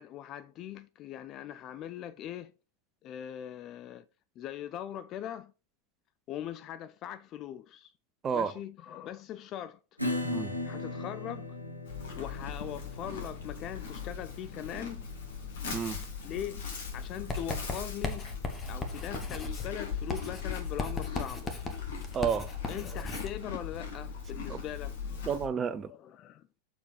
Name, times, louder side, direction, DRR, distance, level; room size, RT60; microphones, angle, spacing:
voice 1, 0.0-2.5 3.0-4.1 4.4-5.5 6.3-7.9 8.3-9.8 10.6-11.6 12.2-15.0 16.2-16.7 16.9-18.3 18.7-21.5 22.7-25.3 25.8-26.6, left 11 dB, 35° left, 0.3 m, -41 dB
Acoustic guitar / Strum, 10.0-17.2, left 1 dB, 90° left, 1.1 m, -39 dB
voice 2, 10.2-10.6 15.7-16.0 22.1-22.5 24.5-24.6 25.3-25.9, right 7 dB, 20° right, 0.5 m, -31 dB
Livestock farm animals working animals, 11.8-25.5, left 6 dB, 55° left, 2.0 m, -39 dB
Writing, 17.3-23.4, left 3 dB, 15° left, 1.3 m, -38 dB
6.8 x 4.5 x 4.5 m
figure-of-eight pair, 90°, 0 cm